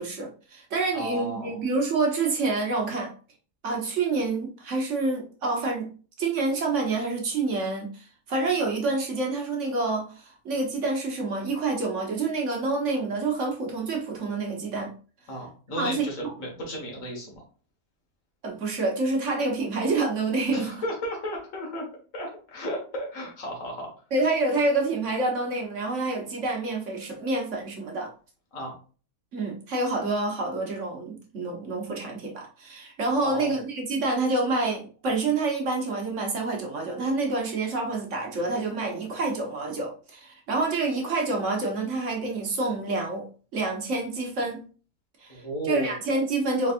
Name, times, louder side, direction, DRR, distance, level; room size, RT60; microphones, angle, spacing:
voice 1, 0.0-3.1 3.6-5.9 6.2-14.9 15.7-16.1 18.4-20.8 24.1-28.1 29.3-43.3 43.5-44.6 45.2-46.7, right 3 dB, 55° right, 1.3 m, -27 dB
voice 2, 0.9-1.6 15.3-17.4 20.5-21.9 22.1-23.9 28.5-28.7 33.2-33.6 45.3-46.0, equal, 55° left, 1.9 m, -34 dB
4.1 x 4.0 x 2.5 m
omnidirectional pair, 1.7 m